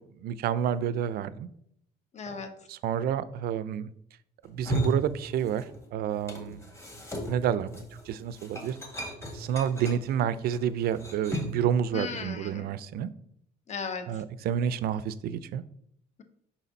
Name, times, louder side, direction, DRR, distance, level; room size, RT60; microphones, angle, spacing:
voice 1, 0.2-1.5 2.7-3.9 4.5-6.6 7.3-8.8 9.3-13.1 14.1-15.6, right 9 dB, 65° right, 16 dB, 0.4 m, -29 dB
voice 2, 2.1-2.5 11.9-12.7 13.7-14.2, left 5 dB, 45° left, 8 dB, 1.0 m, -36 dB
sound 1, 4.4-5.9 6.1-11.7, equal, 15° left, 1.7 m, -36 dB
6.0 x 4.2 x 4.0 m, 0.72 s
cardioid pair, 110°, 17 cm